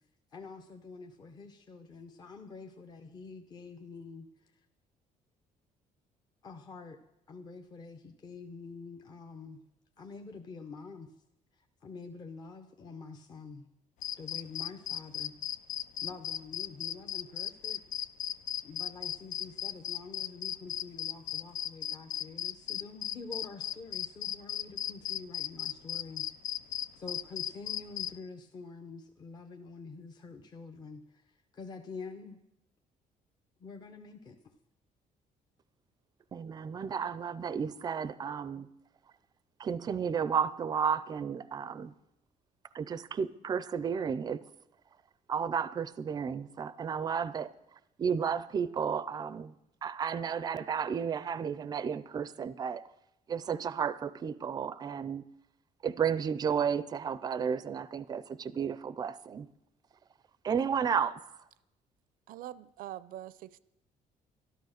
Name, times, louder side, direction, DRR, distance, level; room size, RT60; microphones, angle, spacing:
voice 1, 0.3-4.6 6.4-7.0 7.3-9.6 10.0-11.1 11.5-13.7 14.2-15.3 16.0-18.1 18.6-26.3 27.0-32.4 33.6-34.5, left 4 dB, 30° left, 0.8 m, -47 dB
sound 1, 14.0-28.1, left 10 dB, 60° left, 0.4 m, -36 dB
voice 2, 36.3-38.7 39.6-41.9 42.7-44.4 45.3-47.5 48.0-49.5 49.8-52.8 53.3-55.2 55.8-59.5 60.4-61.3, right 7 dB, 30° right, 0.5 m, -32 dB
voice 3, 62.3-63.6, right 13 dB, 75° right, 0.6 m, -44 dB
13.0 x 12.0 x 6.5 m
cardioid pair, 170°, 14 cm